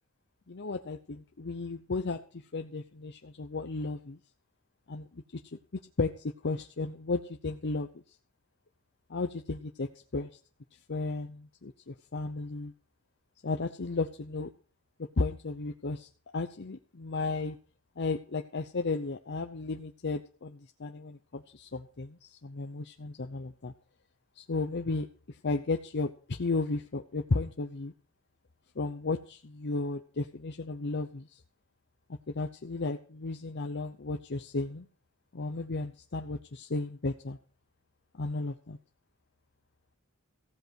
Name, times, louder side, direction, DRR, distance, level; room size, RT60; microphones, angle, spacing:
voice 1, 0.5-4.2 4.9-5.2 6.0-6.1 6.4-7.9 9.1-10.3 10.9-12.7 13.4-14.5 15.0-17.6 18.0-23.7 24.4-27.9 28.8-31.4 32.3-34.9 35.3-37.4 38.1-38.8, left 3 dB, 55° left, 6 dB, 0.8 m, -34 dB
15.5 x 8.0 x 6.4 m, 0.39 s
head